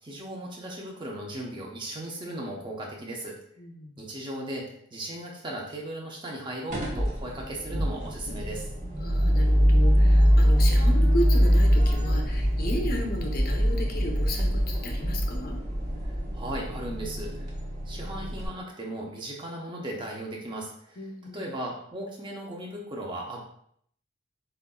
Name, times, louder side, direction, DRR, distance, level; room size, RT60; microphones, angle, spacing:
voice 1, 0.0-3.4 4.0-8.7 16.3-17.5 17.9-21.0 21.3-23.4, right 1 dB, 25° right, -2 dB, 1.0 m, -37 dB
voice 2, 3.6-4.0 9.0-15.6 21.0-21.5, equal, 50° left, 1 dB, 0.8 m, -34 dB
sound 1, 6.7-18.5, equal, 40° right, 1.2 m, -23 dB
8.0 x 2.7 x 2.4 m, 0.66 s
head